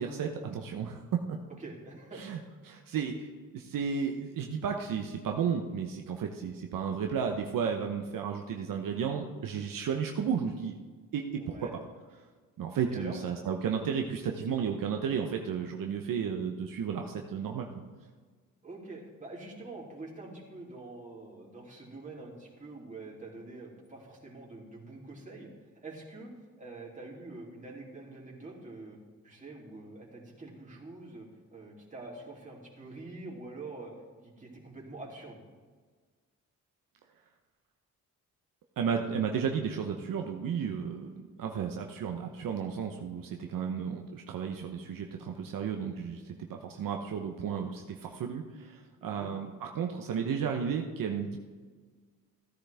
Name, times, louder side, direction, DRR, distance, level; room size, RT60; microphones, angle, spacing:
voice 1, 0.0-1.4 2.2-2.4 2.6-3.3 3.5-10.8 11.1-11.6 12.6-17.7 38.8-51.4, right 7 dB, 70° right, 3 dB, 1.0 m, -33 dB
voice 2, 1.5-2.2 11.4-11.7 12.9-13.2 18.6-25.5 25.8-26.3 26.6-29.0 29.2-33.9 34.2-35.4 49.0-49.3, right 2 dB, 20° right, -4 dB, 3.2 m, -45 dB
15.5 x 10.0 x 3.5 m, 1.5 s
cardioid pair, 90°, 34 cm